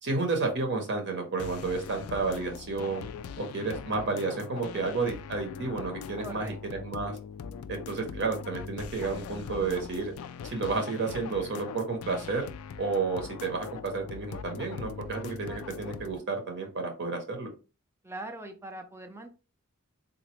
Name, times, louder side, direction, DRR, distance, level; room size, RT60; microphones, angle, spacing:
voice 1, 0.0-3.0 3.4-7.2 7.7-10.1 10.4-12.5 12.8-17.5, right 4 dB, 55° right, 4 dB, 0.7 m, -31 dB
sound 1, 1.4-16.2, left 6 dB, 80° left, 0.3 m, -41 dB
voice 2, 6.2-6.9 18.0-19.3, right 2 dB, 10° right, 5 dB, 0.4 m, -42 dB
3.8 x 2.5 x 3.0 m, 0.32 s
head